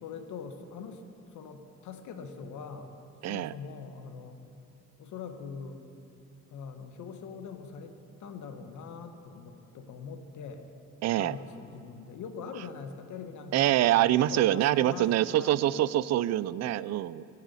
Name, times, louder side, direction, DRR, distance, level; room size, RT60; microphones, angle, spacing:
voice 1, 0.0-1.0 1.3-2.9 3.3-4.4 5.0-5.8 6.5-10.6 11.2-14.0 14.3-15.9, left 5 dB, 75° left, 7 dB, 1.1 m, -43 dB
voice 2, 3.2-3.5 11.0-11.4 13.5-17.2, right 13 dB, 60° right, 18 dB, 0.4 m, -25 dB
20.5 x 7.2 x 4.1 m, 2.6 s
cardioid pair, 90°, 30 cm